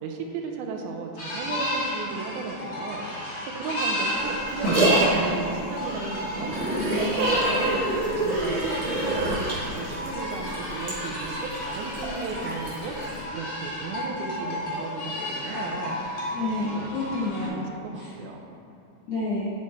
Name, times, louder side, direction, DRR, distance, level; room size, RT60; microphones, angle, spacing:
voice 1, 0.0-6.5 6.9-16.2 16.7-16.9 17.4-18.4, right 4 dB, 80° right, 2 dB, 1.9 m, -35 dB
sound 1, 1.2-17.5, equal, 40° left, 2.0 m, -32 dB
sound 2, 4.1-10.2, right 2 dB, 65° right, 1.8 m, -26 dB
voice 2, 6.8-7.4 16.3-18.1 19.1-19.5, left 3 dB, 70° left, -7 dB, 1.5 m, -30 dB
sound 3, 7.2-13.2, right 1 dB, 40° right, 2.4 m, -40 dB
10.5 x 4.9 x 4.2 m, 2.7 s
omnidirectional pair, 4.3 m